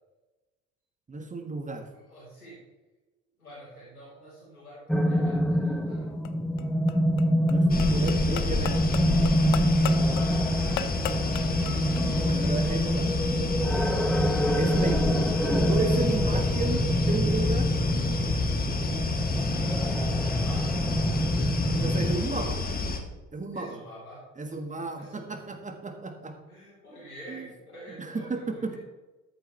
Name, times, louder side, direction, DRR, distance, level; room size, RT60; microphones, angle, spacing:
voice 1, 1.1-1.9 7.5-8.8 11.9-13.3 14.6-15.2 15.6-17.7 21.7-22.6 23.3-23.7 24.4-26.3 27.3-27.5 28.0-28.8, right 3 dB, 15° right, 5 dB, 1.6 m, -33 dB
voice 2, 1.9-2.6 3.4-6.1 14.3-14.9 19.3-21.0 21.9-22.7 23.5-24.2 25.0-25.4 26.5-28.8, right 1 dB, 90° left, -8 dB, 3.9 m, -48 dB
sound 1, 4.9-22.2, equal, ahead, 0.6 m, -26 dB
sound 2, 6.1-12.1, left 10 dB, 50° left, 0.7 m, -38 dB
sound 3, 7.7-23.0, left 3 dB, 20° left, 1.5 m, -29 dB
13.5 x 7.8 x 3.3 m, 1.1 s
figure-of-eight pair, 65°, 43 cm